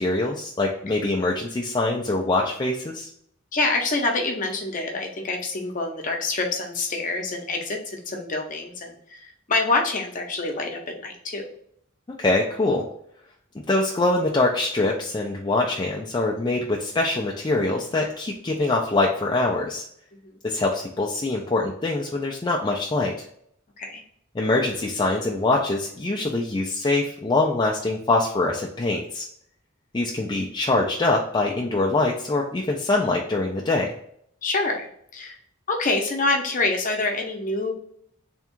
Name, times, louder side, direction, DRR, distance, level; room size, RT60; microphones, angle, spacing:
voice 1, 0.0-3.1 12.2-12.8 13.5-19.8 20.4-23.1 24.3-29.3 29.9-33.9, left 2 dB, 20° left, -2 dB, 0.4 m, -24 dB
voice 2, 3.5-11.5 20.2-20.4 23.8-24.0 34.4-35.3 35.7-37.7, left 3 dB, 40° left, 2 dB, 0.7 m, -26 dB
3.5 x 2.4 x 4.3 m, 0.67 s
head